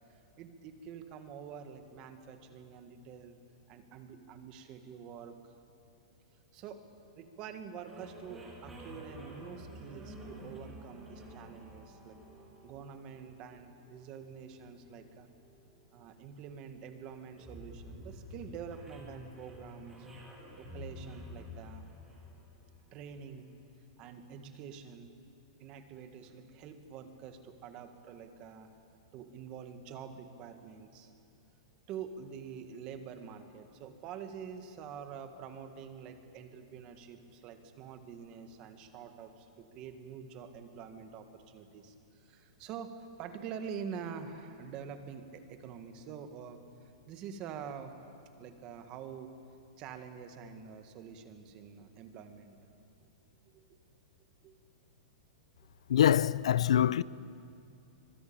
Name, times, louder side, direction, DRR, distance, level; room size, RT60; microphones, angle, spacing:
voice 1, 0.1-3.4 3.7-5.6 6.5-6.9 7.2-12.2 12.6-15.3 15.9-20.1 20.6-21.8 22.9-23.5 24.0-25.1 25.6-28.7 29.1-31.1 31.9-46.6 47.1-48.0 48.4-49.3 49.8-52.6 53.5-53.7 54.4-54.6, right 7 dB, 25° right, 1.8 m, -46 dB
sound 1, 7.9-23.3, equal, 10° right, 3.5 m, -50 dB
voice 2, 55.9-57.0, left 10 dB, 90° left, 0.6 m, -24 dB
25.0 x 23.5 x 8.8 m
supercardioid pair, 175°, 3 cm